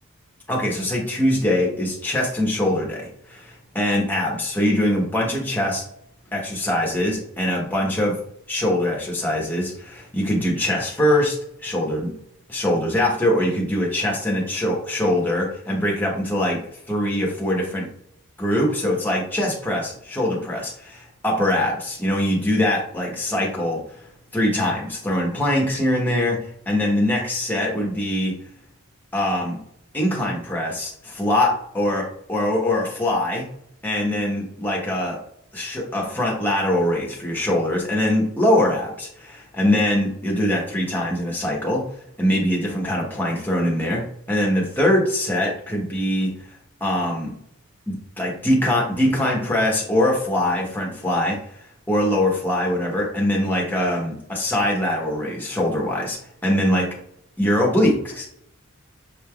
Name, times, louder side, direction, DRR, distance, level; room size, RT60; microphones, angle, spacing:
voice 1, 0.5-5.8 6.3-8.2 8.5-11.4 11.6-12.1 12.5-16.6 16.9-17.9 18.4-24.0 24.3-26.4 26.7-28.3 29.1-29.6 29.9-33.5 33.8-35.2 35.5-41.8 42.2-46.3 46.8-47.3 47.9-51.4 51.9-56.2 56.4-56.9 57.4-58.3, left 1 dB, 10° left, -2 dB, 1.0 m, -22 dB
6.4 x 3.3 x 2.3 m, 0.72 s
head